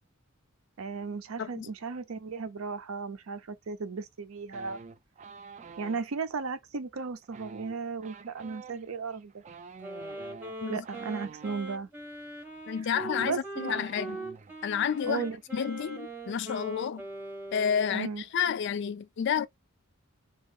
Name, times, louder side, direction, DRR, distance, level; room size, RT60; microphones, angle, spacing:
voice 1, 0.8-4.8 5.8-9.4 10.7-11.9 13.2-13.8 15.1-15.4 17.9-18.2, right 4 dB, 80° right, 0.6 m, -35 dB
sound 1, 4.5-6.0 7.2-11.6 12.5-12.6 12.9-14.5 14.8-15.1 15.3-15.8, right 5 dB, 35° right, 0.3 m, -48 dB
Wind instrument woodwind instrument, 9.8-18.0, right 1 dB, 10° right, 0.8 m, -41 dB
voice 2, 12.7-14.2 14.6-15.2 15.5-17.1 17.5-19.5, left 7 dB, 55° left, 0.3 m, -30 dB
2.9 x 2.4 x 3.5 m
head